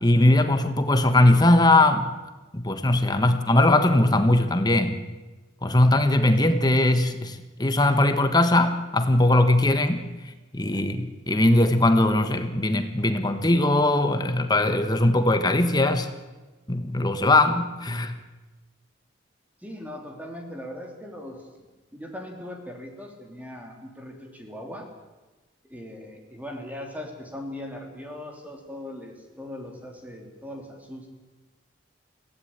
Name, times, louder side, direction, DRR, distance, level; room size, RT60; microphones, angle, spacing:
voice 1, 0.0-2.1 2.5-5.0 5.6-10.0 10.5-16.1 16.7-18.2, left 1 dB, 20° left, 8 dB, 1.3 m, -20 dB
voice 2, 19.6-21.4 21.9-24.9 25.6-31.1, left 1 dB, 10° right, 2 dB, 3.1 m, -39 dB
22.5 x 16.5 x 8.9 m, 1.2 s
head